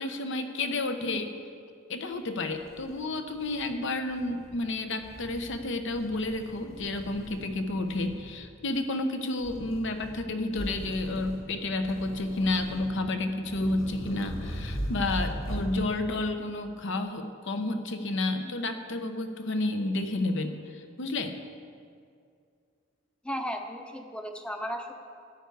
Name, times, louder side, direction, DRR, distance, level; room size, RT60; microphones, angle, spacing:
voice 1, 0.0-1.3 1.9-21.4, left 2 dB, 65° left, 7 dB, 0.8 m, -31 dB
sound 1, 2.1-2.2 2.5-3.7 4.1-4.5 5.0-5.5 5.9-7.5 7.8-8.3 9.4-10.2 10.5-11.4 11.8-13.0 13.4-15.7, equal, 90° left, 2.8 m, -39 dB
voice 2, 23.2-24.9, equal, 5° left, 5 dB, 0.7 m, -35 dB
13.0 x 9.2 x 4.7 m, 2.3 s
head